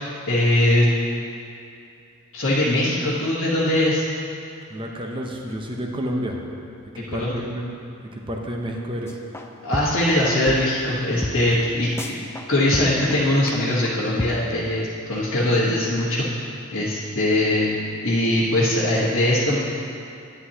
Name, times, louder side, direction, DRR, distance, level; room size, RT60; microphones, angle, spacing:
voice 1, 0.3-0.9 2.3-4.0 7.1-7.4 9.6-12.2 12.5-16.3 16.7-17.7 18.0-19.6, left 1 dB, 60° left, -9 dB, 1.2 m, -21 dB
voice 2, 4.7-6.4 6.9-7.7 8.1-9.2, equal, 25° right, 1 dB, 0.8 m, -30 dB
sound 1, 9.1-9.5 9.7-10.1 10.5-10.6 10.8-10.9 11.2-11.3 11.6-11.7 12.0-12.5 12.7-13.1 13.5-13.6 13.9-14.0 14.2-14.3, left 1 dB, 10° left, 0.4 m, -29 dB
10.0 x 9.7 x 2.8 m, 2.6 s
head